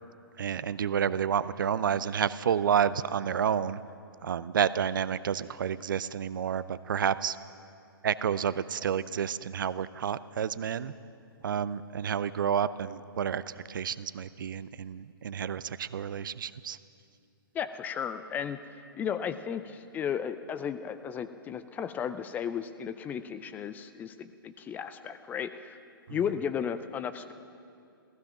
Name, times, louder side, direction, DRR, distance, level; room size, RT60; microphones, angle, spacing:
voice 1, 0.4-3.8 4.2-7.4 8.0-10.9 11.4-13.4 13.7-16.8 26.1-26.2, right 8 dB, 60° right, 16 dB, 0.5 m, -30 dB
voice 2, 17.5-18.6 19.0-25.8 26.1-27.3, left 8 dB, 15° left, 12 dB, 0.4 m, -34 dB
15.0 x 14.5 x 6.0 m, 2.5 s
figure-of-eight pair, 120°, 12 cm